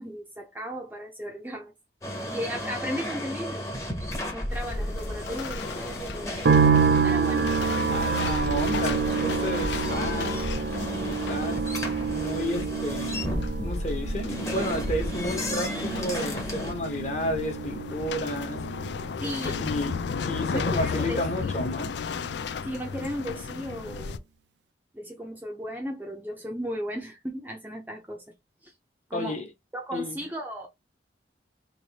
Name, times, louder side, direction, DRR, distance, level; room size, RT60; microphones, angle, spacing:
voice 1, 0.0-1.7 2.3-3.8 4.3-6.4 7.0-7.5 19.2-19.8 20.5-21.5 22.6-24.2 24.9-28.2 28.6-28.7 29.1-29.4 29.7-30.7, equal, 10° right, 0.7 m, -35 dB
sound 1, 2.0-16.7, left 1 dB, 15° left, 1.0 m, -33 dB
sound 2, 4.5-24.2, left 5 dB, 70° left, 0.4 m, -35 dB
sound 3, 6.4-21.7 22.0-22.8, right 5 dB, 75° right, 0.7 m, -28 dB
voice 2, 7.9-10.3 11.0-11.6 12.1-13.2 13.6-18.6 19.2-20.0 20.3-21.9 29.1-29.5 29.9-30.2, left 1 dB, 35° left, 1.2 m, -32 dB
3.3 x 2.7 x 4.0 m
head